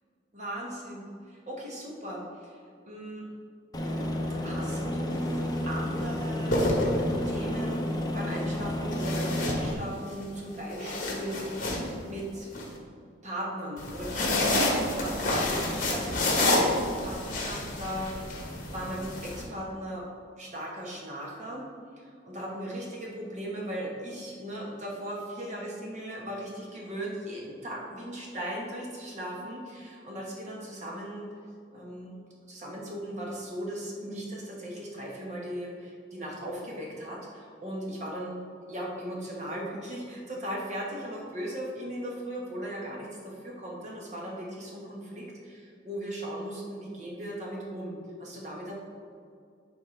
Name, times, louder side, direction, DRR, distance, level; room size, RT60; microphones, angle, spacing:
voice 1, 0.3-2.5 2.9-3.2 4.4-7.0 7.3-11.5 12.1-12.5 13.2-18.4 18.7-20.0 20.4-21.6 22.0-31.3 31.7-32.2 32.5-38.4 38.7-48.7, equal, 40° right, -3 dB, 1.3 m, -38 dB
Aircraft, 3.7-9.7, left 1 dB, 20° left, 0.7 m, -31 dB
sound 1, 5.1-5.4 6.3-7.4 8.9-10.1 10.5-12.6 13.8-19.4, left 2 dB, 45° left, 1.2 m, -29 dB
11.0 x 4.4 x 3.3 m, 2.2 s
head